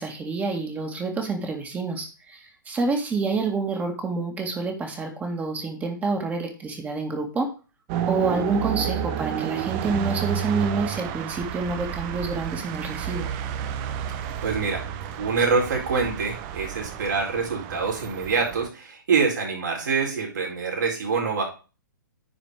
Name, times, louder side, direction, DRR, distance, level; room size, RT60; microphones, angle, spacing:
voice 1, 0.0-7.5 8.1-13.3, right 3 dB, 15° right, 3 dB, 2.1 m, -28 dB
sound 1, 7.9-18.7, right 9 dB, 30° right, 1.0 m, -31 dB
voice 2, 14.4-14.8 15.2-21.4, right 5 dB, 60° right, -1 dB, 4.6 m, -25 dB
10.0 x 5.0 x 4.9 m, 0.33 s
figure-of-eight pair, 120°, 11 cm